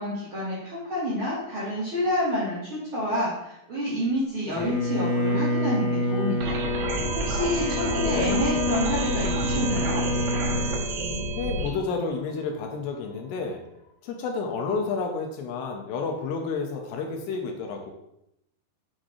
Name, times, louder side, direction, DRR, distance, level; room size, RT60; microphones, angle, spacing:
voice 1, 0.0-10.0, left 1 dB, 65° right, -8 dB, 1.3 m, -29 dB
Bowed string instrument, 4.5-10.8, left 1 dB, 45° left, 2.8 m, -28 dB
sound 1, 6.4-11.7, right 1 dB, 85° right, 3.7 m, -29 dB
sound 2, 6.5-13.9, left 3 dB, 65° left, 2.5 m, -47 dB
voice 2, 8.0-8.4 11.4-13.6 14.0-17.9, left 4 dB, 80° left, 3 dB, 2.7 m, -30 dB
7.4 x 6.4 x 3.2 m, 0.81 s
omnidirectional pair, 5.3 m